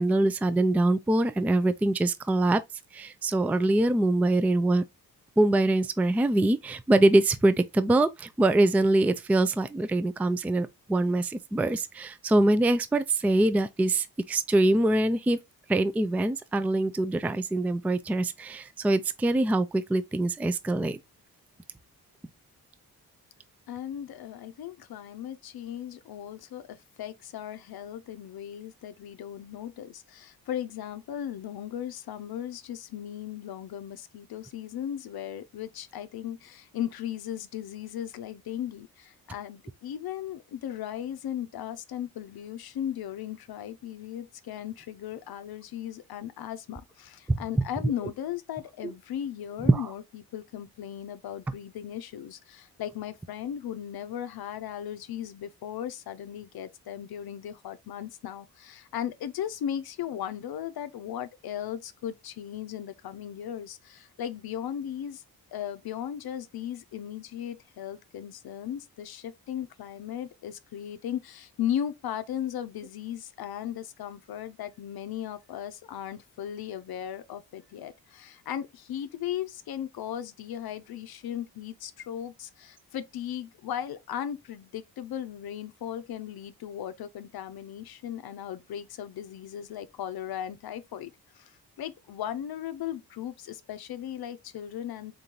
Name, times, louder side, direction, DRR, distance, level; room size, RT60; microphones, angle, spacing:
voice 1, 0.0-2.6 2.9-4.8 5.4-15.4 15.7-21.0 47.3-47.4 48.8-48.9 49.7-49.9, right 2 dB, 5° right, 0.3 m, -24 dB
voice 2, 23.7-65.2 65.5-95.1, left 10 dB, 75° left, 0.6 m, -37 dB
3.9 x 3.7 x 2.8 m
cardioid pair, 75°, 38 cm